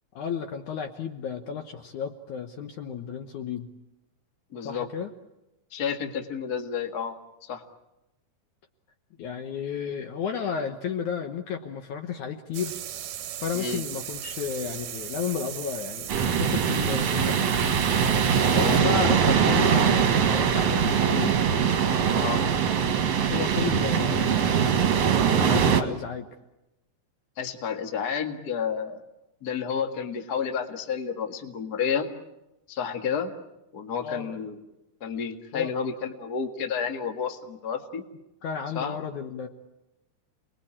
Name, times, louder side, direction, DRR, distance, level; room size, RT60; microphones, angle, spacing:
voice 1, 0.1-3.7 4.6-5.1 9.2-12.8 13.4-17.6 18.7-21.3 23.3-24.5 25.3-26.3 34.0-34.4 35.5-35.7 38.4-39.5, left 7 dB, 65° left, 5 dB, 2.1 m, -32 dB
voice 2, 4.5-4.9 5.7-7.1 7.4-7.6 13.5-13.8 18.5-18.9 22.1-22.4 27.4-29.0 29.4-32.1 32.7-33.3 33.7-34.6 35.0-38.0 38.7-38.9, left 7 dB, 45° left, 5 dB, 1.3 m, -30 dB
sound 1, 12.5-18.8, right 11 dB, 65° right, 2.4 m, -37 dB
sound 2, 16.1-25.8, right 7 dB, 50° right, 2.2 m, -22 dB
29.5 x 21.0 x 8.7 m, 0.95 s
omnidirectional pair, 4.6 m